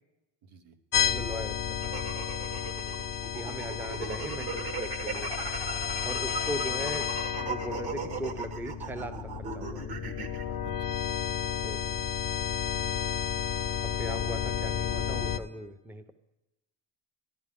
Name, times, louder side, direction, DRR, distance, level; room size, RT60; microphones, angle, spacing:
voice 1, 0.4-0.8 2.5-2.7 5.9-6.3 10.6-11.0 11.3-11.4 12.7-13.2, right 4 dB, 85° right, 6 dB, 1.1 m, -53 dB
sound 1, 0.9-15.4, left 8 dB, 45° left, 0.6 m, -32 dB
voice 2, 1.1-1.9 3.3-5.3 6.0-7.1 7.4-10.0 10.3-10.4 11.6-12.0 13.8-16.1, right 1 dB, 5° right, 9 dB, 0.5 m, -39 dB
sound 2, 1.8-10.4, right 4 dB, 50° right, 1.2 m, -38 dB
14.0 x 11.0 x 3.6 m, 0.98 s
cardioid pair, 110°, 49 cm